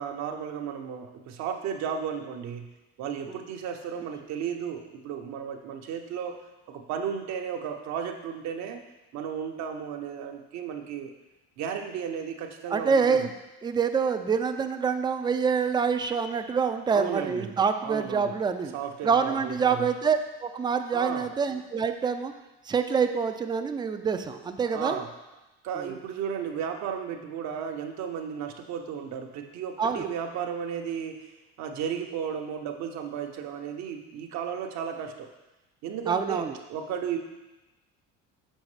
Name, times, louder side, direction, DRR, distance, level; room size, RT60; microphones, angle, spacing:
voice 1, 0.0-2.7 3.0-6.4 6.7-8.8 9.1-11.1 11.6-13.3 16.9-17.5 17.8-18.3 18.7-19.9 20.9-21.3 24.7-25.1 25.6-31.3 31.6-35.3 35.8-37.2, right 7 dB, 65° right, 4 dB, 0.8 m, -34 dB
voice 2, 12.7-13.3 13.6-18.7 19.0-22.3 22.7-25.0 25.8-26.0 29.8-30.1 36.1-36.6, right 6 dB, 15° right, 8 dB, 0.4 m, -26 dB
6.4 x 5.2 x 3.2 m, 1.0 s
supercardioid pair, 100°, 30 cm